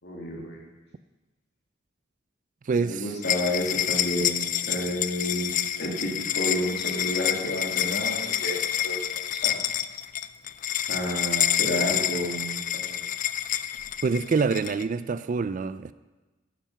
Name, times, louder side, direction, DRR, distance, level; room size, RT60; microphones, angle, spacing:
voice 1, 0.0-0.6 2.7-6.1 6.4-9.2 9.4-9.6 10.9-13.0, equal, 55° left, 2.6 m, -31 dB
voice 2, 2.7-3.1 14.0-15.9, right 4 dB, 40° right, 0.3 m, -26 dB
sound 1, 3.2-14.8, left 11 dB, 40° left, 0.4 m, -28 dB
11.0 x 9.2 x 5.6 m
head